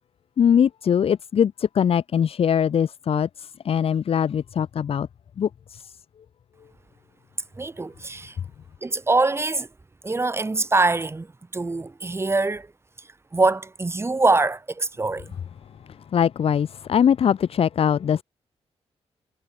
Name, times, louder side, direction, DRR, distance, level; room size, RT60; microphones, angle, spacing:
voice 1, 0.4-5.1 5.4-6.0 15.9-18.2, left 8 dB, 60° left, 1.0 m, -22 dB
voice 2, 7.6-8.4 8.8-9.7 10.0-12.7 13.3-15.3, right 3 dB, 25° right, 4.5 m, -23 dB
cardioid pair, 100°, 11 cm